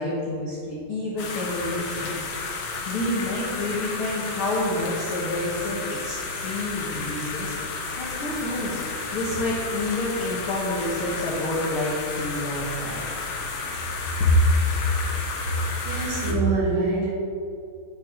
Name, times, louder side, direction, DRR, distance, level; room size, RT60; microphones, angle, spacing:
voice 1, 0.0-2.1 2.8-13.0 14.2-14.3, left 2 dB, 60° left, -6 dB, 1.4 m, -28 dB
sound 1, 1.2-16.3, left 4 dB, 90° left, 1.3 m, -32 dB
voice 2, 15.8-17.1, right 3 dB, 65° right, -5 dB, 3.5 m, -24 dB
8.9 x 8.6 x 3.8 m, 2.4 s
omnidirectional pair, 4.4 m